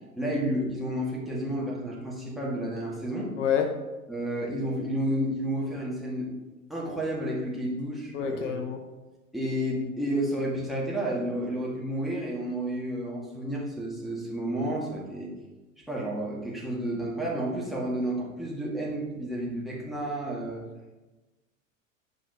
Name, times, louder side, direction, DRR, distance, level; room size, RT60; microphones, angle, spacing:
voice 1, 0.2-3.3 4.1-6.3 6.7-8.5 9.3-15.3 15.9-20.6, right 1 dB, ahead, -3 dB, 1.8 m, -31 dB
voice 2, 3.4-3.7 8.1-8.8, left 8 dB, 60° left, 6 dB, 0.8 m, -27 dB
9.4 x 5.4 x 2.9 m, 1.1 s
figure-of-eight pair, 90°, 41 cm